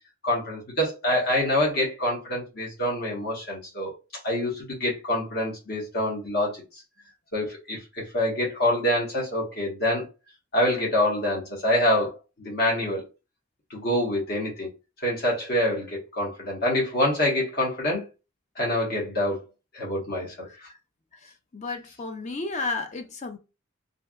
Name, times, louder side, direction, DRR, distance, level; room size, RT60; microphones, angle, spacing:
voice 1, 0.2-3.9 4.2-6.6 7.3-10.0 10.5-13.0 13.7-14.7 15.0-18.0 18.6-19.4 19.7-20.5, left 1 dB, 50° left, 1.4 m, -26 dB
voice 2, 21.5-23.4, left 3 dB, 35° left, 0.5 m, -32 dB
3.3 x 2.6 x 2.3 m
head